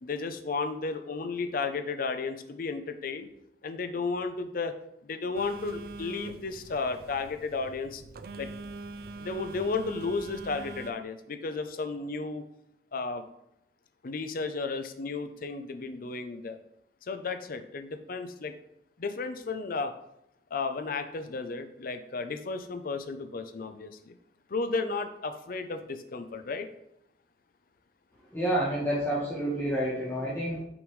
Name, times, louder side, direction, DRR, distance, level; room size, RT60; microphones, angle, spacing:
voice 1, 0.0-3.3 3.6-4.7 5.0-8.0 8.4-8.5 9.2-12.4 12.9-13.2 14.0-16.6 17.1-18.5 19.0-19.9 20.5-24.2 24.5-26.7, left 4 dB, 50° left, 8 dB, 0.5 m, -33 dB
Telephone, 5.3-10.9, right 3 dB, 55° right, 0.4 m, -43 dB
voice 2, 28.3-30.6, right 1 dB, 10° left, -8 dB, 1.2 m, -29 dB
6.1 x 5.3 x 3.2 m, 0.78 s
head